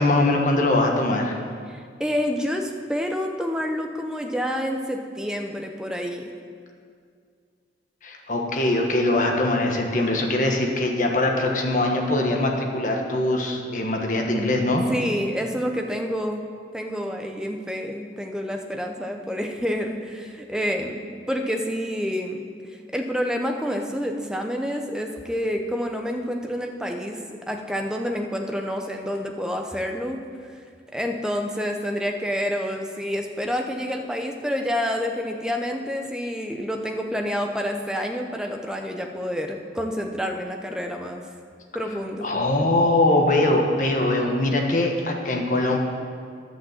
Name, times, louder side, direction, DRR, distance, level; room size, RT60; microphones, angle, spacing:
voice 1, 0.0-1.4 8.0-14.8 42.2-45.8, left 2 dB, 45° left, 1 dB, 1.2 m, -22 dB
voice 2, 1.7-6.3 14.9-16.4 16.7-21.0 21.3-22.5 22.9-27.2 27.5-30.2 30.9-41.3 41.7-42.3, equal, 5° right, 3 dB, 0.7 m, -28 dB
10.5 x 6.2 x 7.3 m, 2.2 s
head